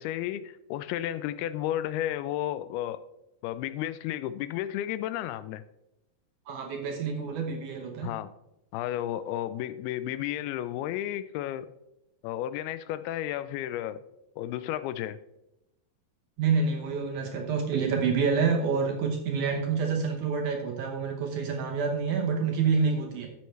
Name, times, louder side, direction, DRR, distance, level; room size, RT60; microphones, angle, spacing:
voice 1, 0.0-3.0 3.4-5.6 8.0-8.3 8.7-11.7 12.2-14.0 14.4-15.2, left 12 dB, 85° left, 14 dB, 2.5 m, -32 dB
voice 2, 6.5-8.1 16.4-23.3, right 5 dB, 70° right, 2 dB, 2.1 m, -27 dB
12.5 x 7.9 x 3.2 m, 0.91 s
omnidirectional pair, 4.5 m